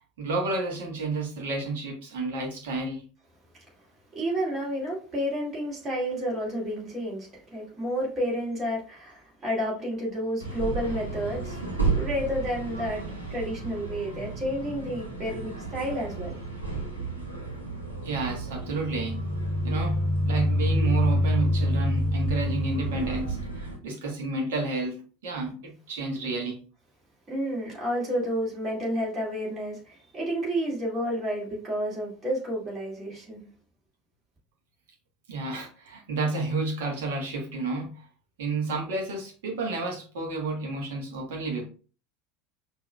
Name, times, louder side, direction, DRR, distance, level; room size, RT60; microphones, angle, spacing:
voice 1, 0.2-3.0 18.0-19.3 19.6-20.0 20.2-26.6 35.3-38.0 38.4-41.6, right 3 dB, 60° right, 1.2 m, -31 dB
voice 2, 4.1-13.0 13.3-16.4 27.3-33.5, equal, 25° right, 2.2 m, -30 dB
sound 1, 10.4-23.8, right 4 dB, 85° right, 1.1 m, -34 dB
sound 2, 18.6-23.4, left 1 dB, 5° left, 0.3 m, -26 dB
5.9 x 2.8 x 2.3 m
figure-of-eight pair, 75°, 0 cm